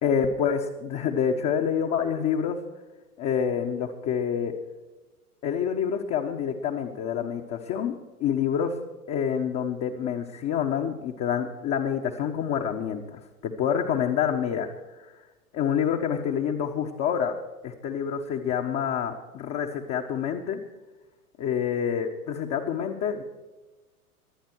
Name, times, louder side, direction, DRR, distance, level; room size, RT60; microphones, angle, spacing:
voice 1, 0.0-2.6 3.2-4.5 5.4-7.9 8.2-8.7 9.1-14.7 15.5-17.3 17.6-20.6 21.4-23.2, left 8 dB, 35° left, 1 dB, 1.3 m, -27 dB
23.5 x 8.7 x 4.7 m, 1.2 s
hypercardioid pair, 105°, 46 cm